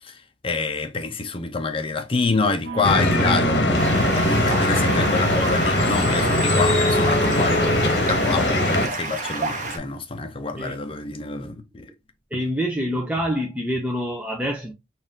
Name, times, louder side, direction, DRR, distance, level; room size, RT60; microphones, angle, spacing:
voice 1, 0.0-11.9 12.3-12.4, left 4 dB, 30° left, 0.6 m, -27 dB
sound 1, 2.6-7.7, right 4 dB, 90° right, 1.0 m, -33 dB
sound 2, 2.8-8.9, left 1 dB, 65° left, 1.0 m, -21 dB
Stream, 3.8-9.8, right 3 dB, 45° right, 0.9 m, -30 dB
voice 2, 12.3-14.7, equal, 5° right, 0.5 m, -26 dB
4.2 x 2.5 x 3.6 m
head